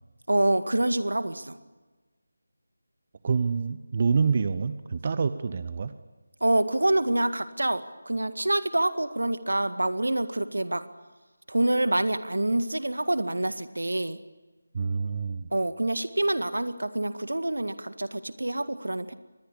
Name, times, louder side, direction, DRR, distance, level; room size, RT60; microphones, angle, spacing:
voice 1, 0.3-1.6 6.4-10.8 11.5-14.2 15.5-19.1, right 1 dB, 75° right, 12 dB, 1.9 m, -26 dB
voice 2, 3.2-5.9 14.7-15.5, right 5 dB, 35° right, 12 dB, 1.0 m, -27 dB
25.0 x 20.0 x 8.5 m, 1.3 s
figure-of-eight pair, 160°, 0 cm